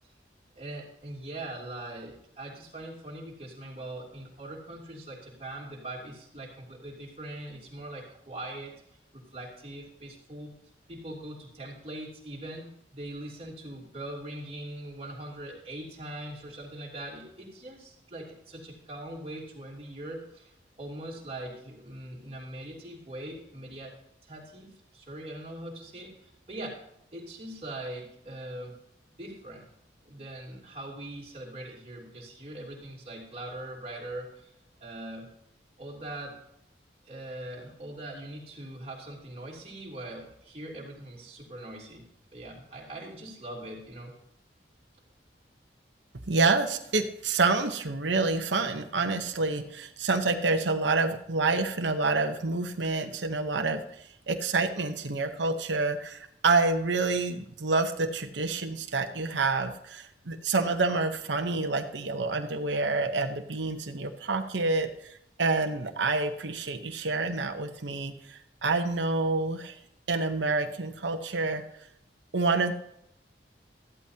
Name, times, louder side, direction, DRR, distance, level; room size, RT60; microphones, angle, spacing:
voice 1, 0.5-8.7 9.1-10.5 10.9-20.5 20.8-23.9 24.2-26.8 27.1-28.7 29.2-29.7 30.0-34.5 34.8-35.3 35.8-36.4 37.0-42.0 42.3-44.1, right 1 dB, 35° right, -3 dB, 3.0 m, -41 dB
voice 2, 46.3-53.8 54.3-69.8 70.1-71.6 72.3-72.7, right 3 dB, 85° right, 5 dB, 1.0 m, -28 dB
14.5 x 12.0 x 2.9 m, 0.77 s
head